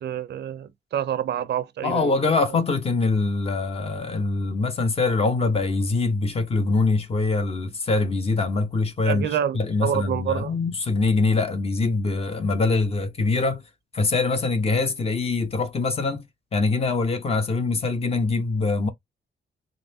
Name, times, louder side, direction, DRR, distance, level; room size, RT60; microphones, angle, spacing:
voice 1, 0.0-2.4 9.0-10.6, right 9 dB, 65° right, 0.6 m, -28 dB
voice 2, 1.8-9.3 9.5-13.6 13.9-16.2 16.5-18.9, left 3 dB, 30° left, 0.8 m, -23 dB
4.0 x 2.9 x 2.7 m
wide cardioid pair, 145°, 19 cm